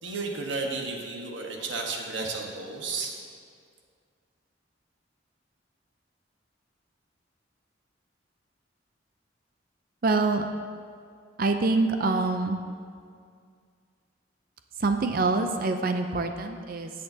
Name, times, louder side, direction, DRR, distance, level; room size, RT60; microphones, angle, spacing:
voice 1, 0.0-3.2, right 3 dB, 80° right, 1 dB, 1.3 m, -33 dB
voice 2, 10.0-10.5 11.4-12.6 14.8-16.9, right 3 dB, 50° right, 6 dB, 0.5 m, -25 dB
18.5 x 6.6 x 2.8 m, 2.2 s
head